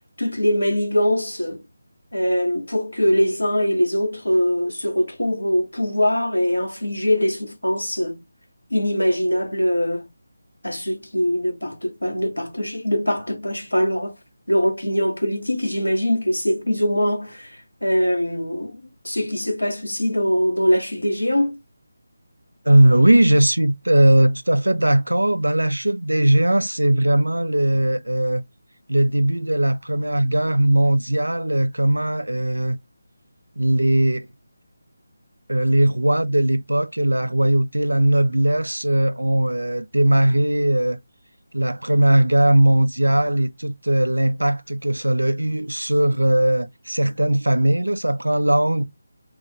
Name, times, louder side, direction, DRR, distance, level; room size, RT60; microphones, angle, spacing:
voice 1, 0.2-1.6 2.1-8.2 8.7-10.1 10.6-14.2 14.5-21.6, equal, 85° left, 1.1 m, -22 dB
voice 2, 22.7-28.4 28.9-32.8 33.6-34.3 35.5-41.0 41.5-48.8, right 1 dB, 80° right, 0.4 m, -19 dB
2.5 x 2.4 x 3.9 m
figure-of-eight pair, 155°, 0 cm